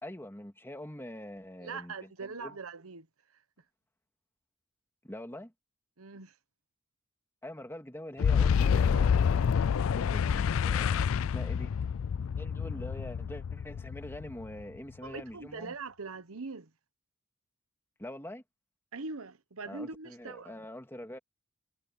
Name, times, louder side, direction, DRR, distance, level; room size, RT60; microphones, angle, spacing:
voice 1, 0.0-2.6 5.0-5.5 7.4-9.4 9.9-11.7 12.2-15.8 18.0-18.4 19.6-21.2, left 1 dB, 10° left, 2.2 m, -44 dB
voice 2, 1.6-3.1 6.0-6.3 15.0-16.7 18.9-20.5, right 4 dB, 85° right, 1.2 m, -42 dB
Boom, 8.2-14.8, left 7 dB, 70° left, 0.4 m, -28 dB
head